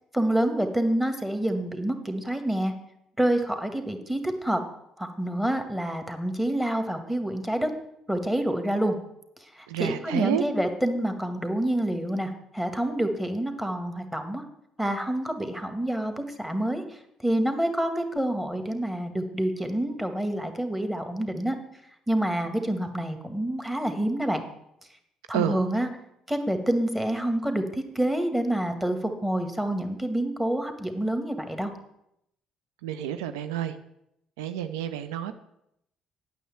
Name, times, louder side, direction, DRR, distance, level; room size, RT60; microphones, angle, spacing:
voice 1, 0.1-2.7 3.2-4.6 5.0-7.7 8.1-9.0 9.6-14.4 14.8-16.8 17.2-21.6 22.1-24.4 25.3-25.9 26.3-31.7, right 1 dB, 5° right, 6 dB, 2.0 m, -27 dB
voice 2, 9.7-10.4 25.3-25.6 32.8-33.8 34.4-35.3, right 11 dB, 80° right, 10 dB, 0.6 m, -29 dB
9.2 x 7.2 x 7.8 m, 0.79 s
hypercardioid pair, 50°, 3 cm